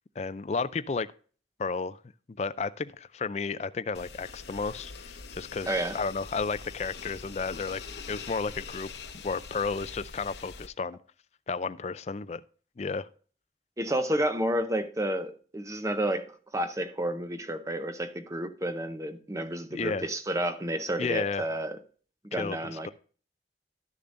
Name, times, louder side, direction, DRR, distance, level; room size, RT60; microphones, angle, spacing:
voice 1, 0.2-1.1 1.6-2.0 2.4-7.8 8.1-8.9 9.2-11.0 11.5-12.4 12.8-13.1 19.7-20.1 21.0-21.4 22.3-22.9, left 4 dB, 40° left, 0.4 m, -32 dB
sound 1, 3.9-10.7, left 5 dB, 75° left, 0.8 m, -43 dB
voice 2, 5.7-6.0 13.8-21.8 22.2-22.9, right 1 dB, 20° right, 0.6 m, -31 dB
12.5 x 6.8 x 2.5 m
head